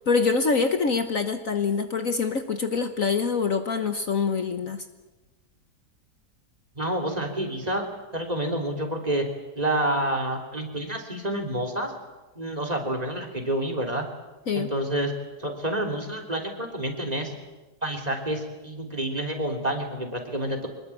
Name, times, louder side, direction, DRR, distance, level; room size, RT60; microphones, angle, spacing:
voice 1, 0.1-4.8 14.5-14.7, left 5 dB, 55° left, 8 dB, 1.5 m, -25 dB
voice 2, 6.8-7.9 8.1-9.3 9.6-11.9 12.4-14.1 14.5-15.1 15.4-17.3 17.8-20.7, right 1 dB, 20° right, 5 dB, 3.4 m, -28 dB
24.5 x 21.0 x 8.5 m, 1.1 s
omnidirectional pair, 1.8 m